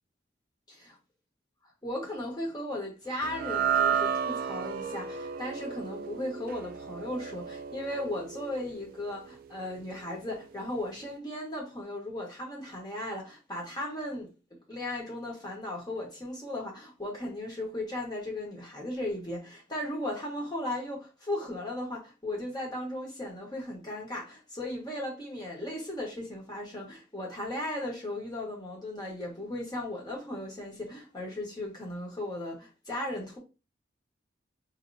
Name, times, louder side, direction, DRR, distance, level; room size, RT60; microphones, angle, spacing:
voice 1, 1.8-14.3 14.7-33.4, left 1 dB, 20° left, 1.3 m, -36 dB
sound 1, 3.2-9.6, right 7 dB, 50° right, 0.3 m, -33 dB
4.5 x 2.9 x 2.6 m
head